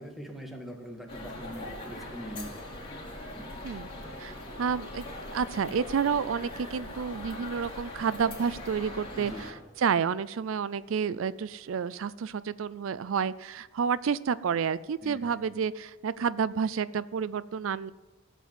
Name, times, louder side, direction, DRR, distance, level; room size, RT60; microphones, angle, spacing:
voice 1, 0.0-2.5 3.3-3.5 9.2-9.5 15.0-15.2, equal, ahead, 2 dB, 2.0 m, -42 dB
sound 1, 1.1-9.5, left 1 dB, 25° left, 3.7 m, -41 dB
voice 2, 4.2-17.9, right 6 dB, 70° right, 17 dB, 0.4 m, -30 dB
15.5 x 8.3 x 7.6 m, 1.2 s
head